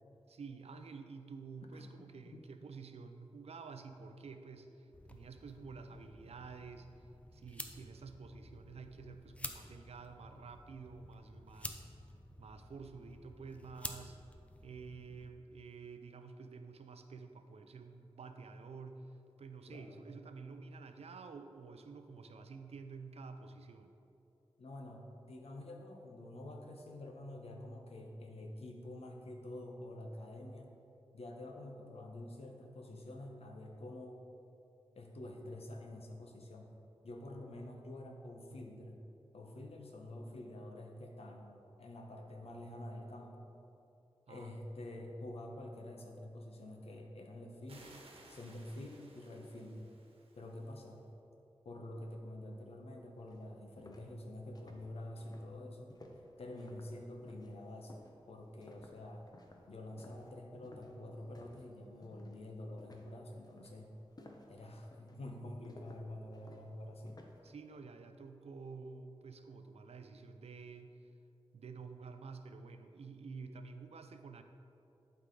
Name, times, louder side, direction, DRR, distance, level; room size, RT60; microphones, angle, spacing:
voice 1, 0.3-6.9 7.3-11.8 12.4-14.2 14.6-19.0 19.4-23.9 44.3-44.6 67.4-71.0 71.5-74.4, right 4 dB, 85° right, 7 dB, 0.5 m, -50 dB
voice 2, 1.7-2.4 19.7-20.0 24.6-30.7 31.1-34.2 34.9-36.7 37.0-39.0 39.3-43.4 44.3-47.9 48.3-49.9 50.4-51.0 51.6-55.9 56.4-57.9 58.3-59.3 59.7-63.9 64.5-67.2, left 1 dB, 75° left, 1 dB, 1.0 m, -48 dB
sound 1, 4.9-15.3, left 1 dB, 15° left, 0.5 m, -50 dB
sound 2, 47.7-51.0, right 2 dB, 65° right, 1.2 m, -60 dB
sound 3, 52.8-52.9 53.3-61.7 62.0-62.4 62.8-67.5, left 2 dB, 40° left, 0.8 m, -58 dB
11.5 x 4.8 x 3.9 m, 2.8 s
wide cardioid pair, 110°, 10 cm